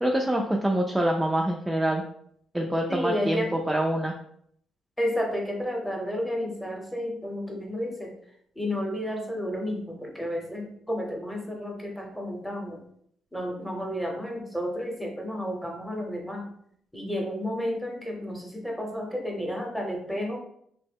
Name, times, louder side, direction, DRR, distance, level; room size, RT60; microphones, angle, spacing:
voice 1, 0.0-2.0 2.5-4.1, right 1 dB, 10° right, 1 dB, 0.3 m, -25 dB
voice 2, 2.9-3.5 5.0-8.1 8.6-12.8 13.3-16.5 16.9-20.4, equal, 5° left, 0 dB, 0.8 m, -31 dB
2.7 x 2.1 x 3.4 m, 0.67 s
cardioid pair, 90°, 0 cm